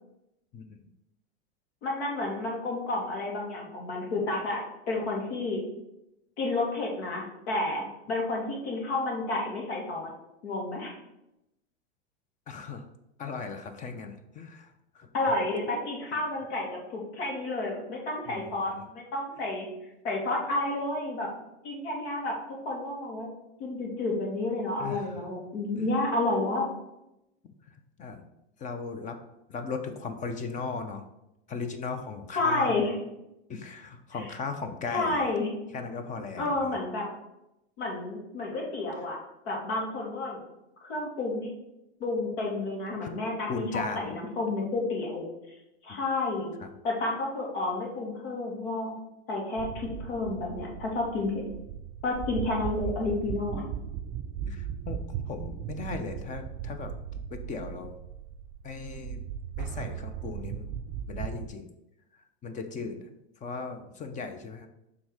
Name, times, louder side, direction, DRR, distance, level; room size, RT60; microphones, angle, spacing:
voice 1, 0.5-0.9 12.5-12.8 13.2-15.1 18.3-18.8 24.8-25.3 25.8-25.9 27.7-28.2 28.6-29.2 29.5-31.0 31.5-32.9 33.5-35.3 35.7-36.8 43.0-43.1 43.5-44.1 46.6-46.7 54.5-55.0 55.3-56.9 57.3-58.0 58.6-59.2 59.6-60.7 61.1-61.7 62.4-63.1 63.4-64.7, left 4 dB, 25° left, 7 dB, 0.6 m, -37 dB
voice 2, 1.8-5.6 6.4-10.1 10.4-10.9 15.1-19.7 20.0-21.3 21.6-22.3 22.6-23.3 23.6-26.7 32.3-33.0 34.9-35.5 36.4-37.1 37.8-39.2 39.5-40.4 40.8-41.5 42.0-43.7 43.9-45.6 45.8-46.5 46.8-48.9 49.3-51.5 52.0-53.7, left 2 dB, 70° left, -2 dB, 2.5 m, -30 dB
sound 1, 49.6-61.5, right 8 dB, 35° right, 0.5 m, -37 dB
6.1 x 3.6 x 4.8 m, 0.88 s
supercardioid pair, 135°, 33 cm